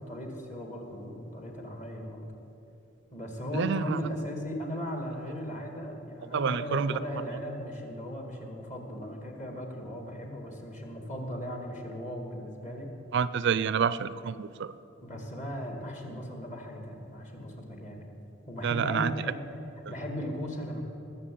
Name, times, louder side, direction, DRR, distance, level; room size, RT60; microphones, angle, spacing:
voice 1, 0.0-2.3 3.1-12.9 15.0-18.1 18.5-19.4 19.9-20.8, equal, 40° left, 2 dB, 2.2 m, -37 dB
voice 2, 3.5-4.0 6.3-7.0 13.1-14.7 18.6-19.1, right 6 dB, 60° right, 16 dB, 0.4 m, -28 dB
19.5 x 7.1 x 8.6 m, 2.9 s
head